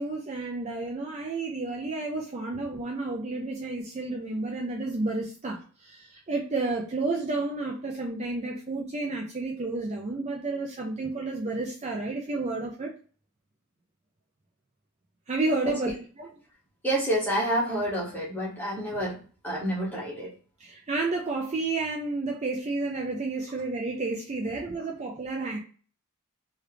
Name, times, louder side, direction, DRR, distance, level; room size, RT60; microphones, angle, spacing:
voice 1, 0.0-12.9 15.3-15.9 16.2-16.3 20.6-25.6, right 3 dB, 30° right, 0 dB, 0.4 m, -31 dB
voice 2, 16.8-19.2 19.4-20.3, right 1 dB, 10° left, -6 dB, 1.1 m, -28 dB
3.0 x 2.3 x 3.3 m, 0.40 s
head